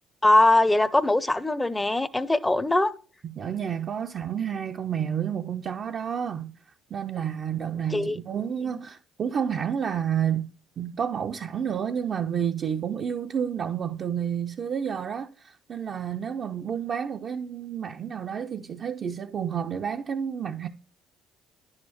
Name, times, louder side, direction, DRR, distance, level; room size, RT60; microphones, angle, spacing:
voice 1, 0.2-2.9 7.9-8.2, left 2 dB, 15° left, 0.6 m, -21 dB
voice 2, 3.2-6.6 6.9-10.5 10.8-20.7, right 8 dB, 50° right, 0.5 m, -30 dB
10.5 x 6.4 x 3.0 m
hypercardioid pair, 60°, 0 cm